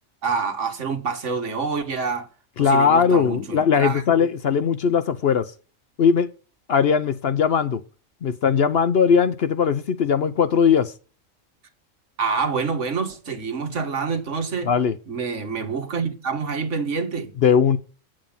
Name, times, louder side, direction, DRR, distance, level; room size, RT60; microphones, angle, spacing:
voice 1, 0.2-2.3 2.6-4.3 12.2-14.7 15.1-17.3, right 5 dB, 65° right, 1.7 m, -27 dB
voice 2, 2.6-5.5 6.0-6.3 6.7-7.8 8.2-10.9 14.6-14.9 17.4-17.8, left 6 dB, 55° left, 0.8 m, -19 dB
8.8 x 7.6 x 5.4 m
omnidirectional pair, 1.4 m